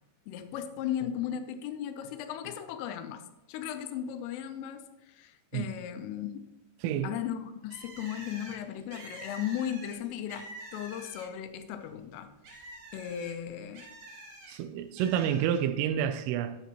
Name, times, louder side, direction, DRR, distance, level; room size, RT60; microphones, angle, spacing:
voice 1, 0.3-3.2 3.5-6.5 7.0-13.9, left 10 dB, 80° left, 3.2 m, -36 dB
Bird, 7.7-11.5 11.9-14.5 15.0-15.6, right 1 dB, 65° right, 1.8 m, -47 dB
voice 2, 14.5-16.6, right 9 dB, 85° right, 3.1 m, -29 dB
10.5 x 10.0 x 3.0 m
omnidirectional pair, 5.9 m